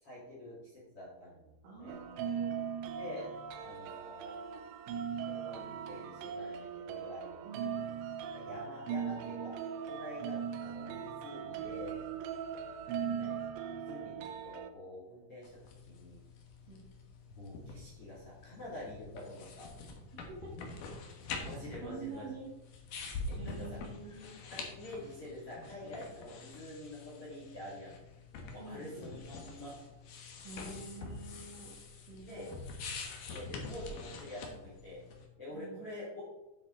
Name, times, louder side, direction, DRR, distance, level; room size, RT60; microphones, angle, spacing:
voice 1, 0.0-2.0 3.0-3.3 3.6-4.3 5.3-7.4 7.8-7.9 8.3-9.5 9.9-12.0 13.2-13.5 13.7-15.6 15.9-16.2 17.3-19.7 21.4-22.3 23.4-28.0 28.5-29.7 32.3-32.5 33.2-35.0 35.4-36.2, left 1 dB, 40° left, -6 dB, 2.6 m, -47 dB
voice 2, 1.6-2.6 7.4-7.8 13.0-13.2 16.7-16.9 20.1-20.5 21.8-22.5 23.4-24.4 28.6-29.1 30.4-31.7 32.1-32.5 35.5-35.8, right 4 dB, 55° right, -6 dB, 3.1 m, -47 dB
sound 1, 1.9-14.7, right 7 dB, 85° right, 3.0 m, -39 dB
sound 2, 15.4-35.2, left 3 dB, 65° left, 2.3 m, -46 dB
9.4 x 8.1 x 3.8 m, 1.0 s
omnidirectional pair, 5.4 m